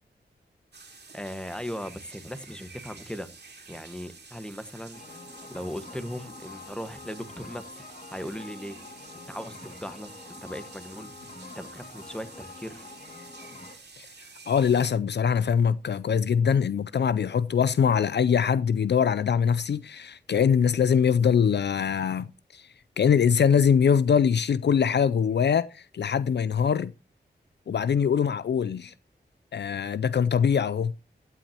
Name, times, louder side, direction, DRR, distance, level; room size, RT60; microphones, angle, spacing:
sound 1, 0.7-14.9, right 4 dB, 65° right, 2.6 m, -49 dB
voice 1, 1.1-3.3 3.7-5.0 5.5-8.8 9.3-11.1 11.6-12.8, equal, 5° left, 1.4 m, -38 dB
sound 2, 4.9-13.8, left 3 dB, 45° left, 2.2 m, -46 dB
voice 2, 14.0-22.7 23.0-26.9 27.7-28.9 29.5-30.9, left 7 dB, 65° left, 0.4 m, -23 dB
15.0 x 9.2 x 2.9 m
cardioid pair, 50°, 19 cm